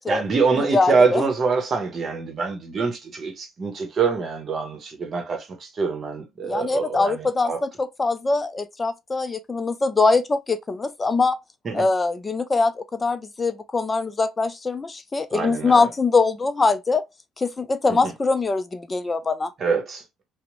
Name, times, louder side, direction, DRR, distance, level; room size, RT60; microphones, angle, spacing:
voice 1, 0.1-7.6 11.6-11.9 15.3-15.9 17.9-18.1 19.6-20.2, right 4 dB, 45° right, 0.9 m, -25 dB
voice 2, 0.7-1.2 6.4-11.4 11.7-17.0 17.4-19.5, left 3 dB, 25° left, 0.3 m, -22 dB
2.9 x 2.0 x 2.5 m
hypercardioid pair, 60°, 0 cm